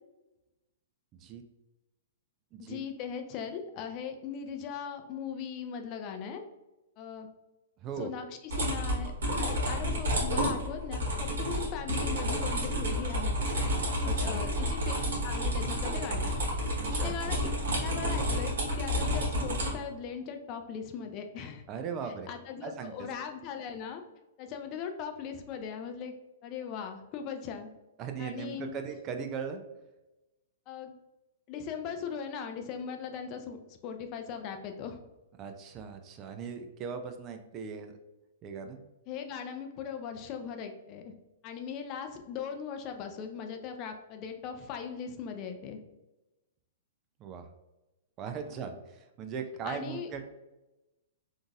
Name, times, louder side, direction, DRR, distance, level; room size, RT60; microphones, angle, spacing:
voice 1, 2.6-6.4 7.0-7.3 8.0-13.7 14.0-14.9 15.2-16.3 16.9-17.5 17.8-21.6 22.0-24.0 24.4-26.1 26.4-27.7 28.2-28.8 30.7-30.9 31.5-35.0 39.1-41.1 41.4-45.8 48.5-48.6 49.6-50.1, left 7 dB, 40° left, 6 dB, 0.4 m, -39 dB
sound 1, 8.5-19.7, equal, 70° right, 1.3 m, -30 dB
voice 2, 14.0-14.4 16.8-17.4 21.7-22.3 22.6-22.9 28.0-29.6 35.4-37.9 38.4-38.8 47.2-47.4 48.2-50.2, right 6 dB, 35° right, 7 dB, 0.4 m, -39 dB
3.7 x 2.5 x 2.4 m, 1.0 s
hypercardioid pair, 115°, 0 cm